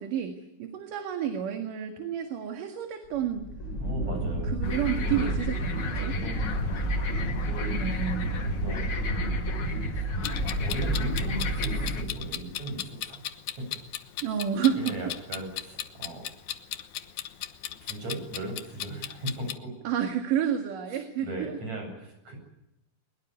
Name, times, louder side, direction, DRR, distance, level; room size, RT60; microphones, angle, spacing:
voice 1, 0.0-3.5 4.0-4.2 4.5-6.1 7.7-8.4 14.2-14.9 19.8-21.5, right 9 dB, 60° right, 6 dB, 3.3 m, -30 dB
sound 1, 3.1-12.6, right 1 dB, 20° left, 5.8 m, -30 dB
voice 2, 3.8-4.5 4.9-5.5 5.8-7.7 8.4-9.3 10.0-10.1 10.4-13.2 13.7-13.8 14.3-14.4 14.8-16.2 17.8-19.7 20.9-22.4, right 1 dB, 45° right, 4 dB, 9.3 m, -38 dB
sound 2, 4.6-12.0, left 5 dB, 40° left, 1.6 m, -39 dB
Clock, 10.2-19.6, left 11 dB, 65° left, 2.2 m, -37 dB
22.5 x 22.0 x 9.4 m, 0.86 s
omnidirectional pair, 4.4 m